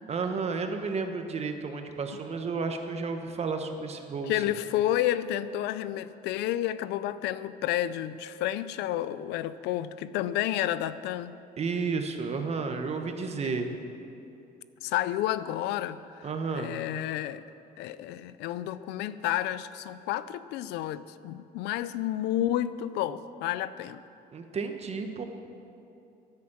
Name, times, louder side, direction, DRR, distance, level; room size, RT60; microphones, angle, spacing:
voice 1, 0.1-4.5 11.6-13.7 16.2-16.8 24.3-25.2, right 4 dB, 40° right, 5 dB, 1.2 m, -32 dB
voice 2, 4.3-11.4 13.4-13.6 14.8-16.3 16.5-17.4 17.8-24.0, left 12 dB, 90° left, 15 dB, 0.5 m, -30 dB
11.0 x 9.6 x 7.2 m, 2.7 s
cardioid pair, 110°, 17 cm